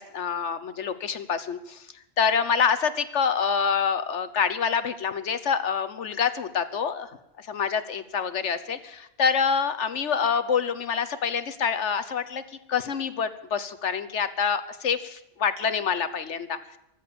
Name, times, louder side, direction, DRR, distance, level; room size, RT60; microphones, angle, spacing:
voice 1, 0.0-1.8 2.2-7.1 7.5-12.4 12.7-16.8, left 6 dB, 75° left, 13 dB, 1.3 m, -26 dB
15.5 x 13.5 x 6.9 m, 0.85 s
omnidirectional pair, 1.2 m